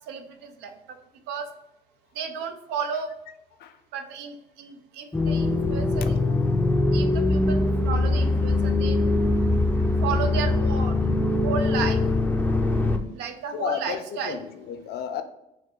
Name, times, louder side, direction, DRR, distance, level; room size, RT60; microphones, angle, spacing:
voice 1, 0.1-0.7 1.3-1.5 2.1-3.1 3.9-6.1 6.9-9.0 9.8-11.0 11.4-12.0 13.1-14.4, right 6 dB, 85° right, 7 dB, 0.7 m, -33 dB
sound 1, 5.1-13.0, left 2 dB, 10° left, 0.4 m, -22 dB
voice 2, 13.5-15.2, left 8 dB, 70° left, 8 dB, 0.5 m, -33 dB
4.6 x 2.2 x 4.5 m, 0.87 s
cardioid pair, 110°, 17 cm